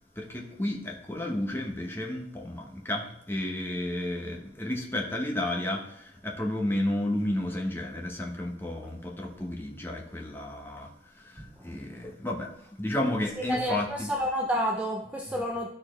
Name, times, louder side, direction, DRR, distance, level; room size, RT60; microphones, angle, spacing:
voice 1, 0.1-12.5 12.8-14.1, left 1 dB, 10° left, 0 dB, 1.1 m, -32 dB
voice 2, 11.4-12.0 13.5-15.7, equal, 5° right, 1 dB, 0.5 m, -30 dB
12.5 x 4.4 x 3.2 m, 0.70 s
head